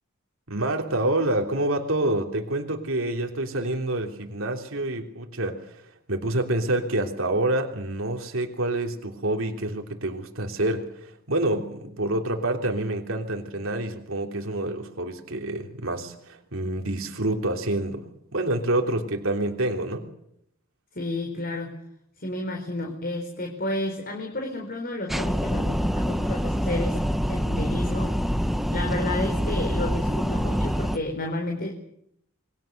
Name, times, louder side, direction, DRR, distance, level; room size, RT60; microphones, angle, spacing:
voice 1, 0.5-5.8 6.1-18.0 18.3-20.1, right 1 dB, 70° right, 3 dB, 3.3 m, -27 dB
voice 2, 20.9-21.7 22.2-27.0 27.3-28.1 28.7-31.7, left 2 dB, 45° left, 2 dB, 4.4 m, -31 dB
sound 1, 25.1-31.0, equal, ahead, 1.2 m, -26 dB
28.5 x 23.0 x 6.7 m, 0.73 s
head